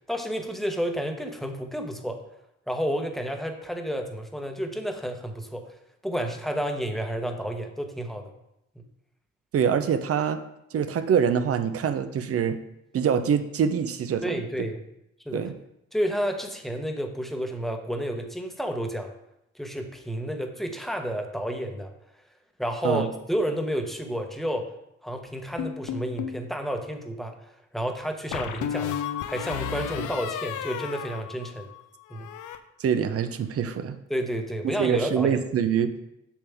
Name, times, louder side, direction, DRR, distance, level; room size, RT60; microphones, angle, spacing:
voice 1, 0.1-2.2 2.7-5.6 6.0-8.3 14.2-14.8 15.3-15.4 15.9-19.1 19.5-21.9 22.6-24.7 25.0-27.3 27.7-31.7 32.1-32.3 34.1-35.4, equal, ahead, 4 dB, 1.0 m, -30 dB
voice 2, 9.5-10.4 10.7-12.6 12.9-14.4 15.3-15.5 22.8-23.1 32.8-34.0 34.8-35.9, right 7 dB, 50° right, 10 dB, 0.7 m, -24 dB
sound 1, 25.6-26.4 28.3-31.8 32.1-32.6, left 9 dB, 85° left, 0.6 m, -33 dB
7.3 x 7.0 x 3.5 m, 0.82 s
cardioid pair, 90°, 30 cm